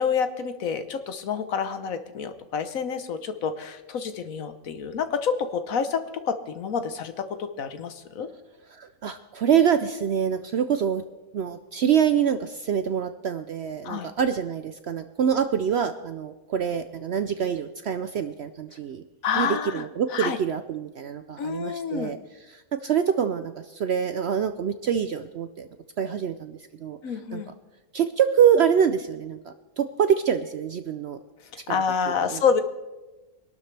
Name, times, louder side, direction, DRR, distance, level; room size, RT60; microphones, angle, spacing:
voice 1, 0.0-8.3 13.8-14.1 19.2-19.8 20.1-20.4 21.4-22.1 27.0-27.5 31.5-32.6, left 6 dB, 70° left, 9 dB, 1.3 m, -28 dB
voice 2, 8.7-11.0 11.3-19.0 19.4-22.2 22.5-25.7 26.0-27.0 27.3-27.4 27.9-31.2 32.2-32.4, right 8 dB, 65° right, 9 dB, 0.7 m, -25 dB
24.0 x 12.0 x 3.3 m, 1.1 s
omnidirectional pair, 1.6 m